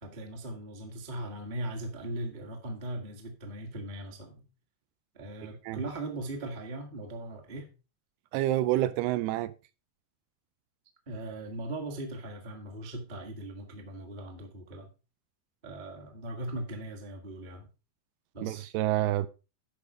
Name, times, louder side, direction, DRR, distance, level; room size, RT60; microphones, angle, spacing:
voice 1, 0.0-4.5 5.1-7.7 11.1-14.9 15.6-17.7 18.3-18.7, right 1 dB, 40° right, 0.6 m, -39 dB
voice 2, 5.4-5.8 8.3-9.5 18.4-19.3, right 14 dB, 80° right, 2.5 m, -28 dB
12.0 x 5.2 x 4.8 m
omnidirectional pair, 4.8 m